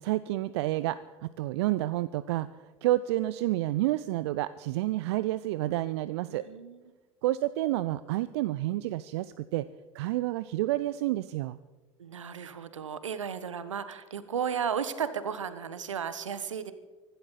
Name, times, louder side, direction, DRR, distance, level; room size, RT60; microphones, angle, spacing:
voice 1, 0.0-2.5 2.8-6.5 7.2-9.7 9.9-11.6, right 16 dB, 60° right, 16 dB, 0.5 m, -29 dB
voice 2, 6.3-6.9 12.0-16.7, right 7 dB, 75° right, 13 dB, 1.1 m, -34 dB
24.5 x 12.0 x 4.1 m, 1.2 s
figure-of-eight pair, 70°, 16 cm